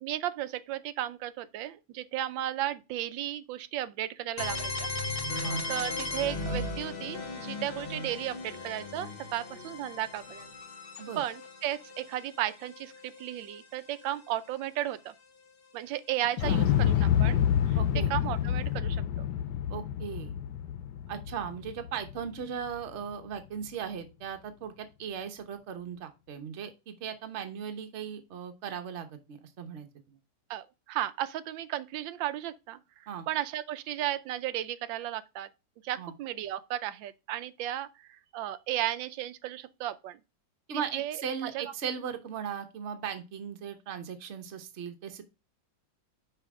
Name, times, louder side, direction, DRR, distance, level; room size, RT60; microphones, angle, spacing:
voice 1, 0.0-4.9 5.3-10.5 11.2-15.1 15.7-17.8 18.1-19.2 30.5-35.5 35.8-40.2 40.9-41.7, right 13 dB, 90° right, 1.4 m, -35 dB
sound 1, 4.4-14.1, left 2 dB, 45° left, 0.8 m, -37 dB
Explosion, 16.4-22.4 22.7-22.8, left 9 dB, 75° left, 1.1 m, -28 dB
voice 2, 17.8-18.1 19.7-20.3 21.1-30.2 33.1-33.3 36.0-36.1 40.7-45.2, right 7 dB, 45° right, 1.1 m, -38 dB
5.7 x 5.0 x 4.7 m
omnidirectional pair, 2.0 m